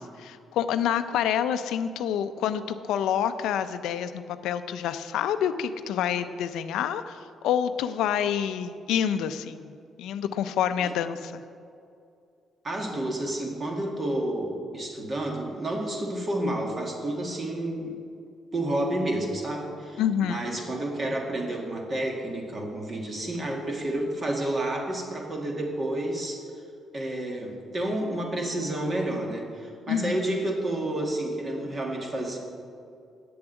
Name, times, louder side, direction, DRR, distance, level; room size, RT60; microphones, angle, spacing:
voice 1, 0.2-11.4 20.0-20.5 29.9-30.2, left 9 dB, 85° left, 11 dB, 0.5 m, -28 dB
voice 2, 12.6-17.9 18.5-26.5 26.9-32.4, right 1 dB, 35° right, 1 dB, 2.0 m, -30 dB
8.7 x 7.1 x 8.0 m, 2.4 s
cardioid pair, 90°, 0 cm